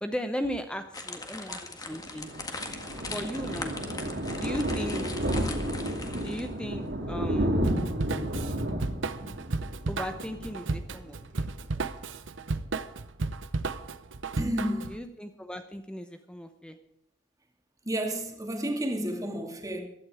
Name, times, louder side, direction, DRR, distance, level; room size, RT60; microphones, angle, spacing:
voice 1, 0.0-2.3 3.1-3.8 4.4-5.1 6.2-7.5 9.9-11.5 14.9-16.8, equal, 5° left, 0.8 m, -36 dB
sound 1, 0.9-6.6, left 3 dB, 20° left, 1.7 m, -40 dB
Thunder, 1.9-11.3 11.6-11.8 12.1-12.2 12.4-12.5, equal, 70° right, 2.8 m, -32 dB
Drum kit / Drum, 7.6-15.0, right 3 dB, 85° right, 0.8 m, -33 dB
voice 2, 14.4-15.0 17.9-19.8, equal, 20° right, 2.3 m, -31 dB
15.5 x 12.0 x 4.9 m
head